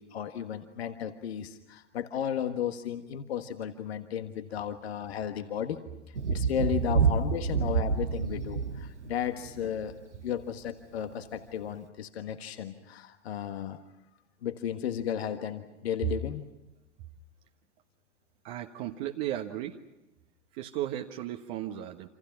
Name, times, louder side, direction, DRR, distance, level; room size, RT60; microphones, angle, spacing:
voice 1, 0.0-9.9 10.2-13.8 14.4-16.4, left 9 dB, 60° left, 8 dB, 1.6 m, -34 dB
Thunder, 6.1-10.0 11.3-11.4, right 5 dB, 80° right, 1.3 m, -28 dB
voice 2, 18.4-19.8 20.5-22.1, right 12 dB, 45° right, 4 dB, 1.5 m, -35 dB
28.5 x 27.5 x 5.9 m, 0.99 s
figure-of-eight pair, 90°, 35 cm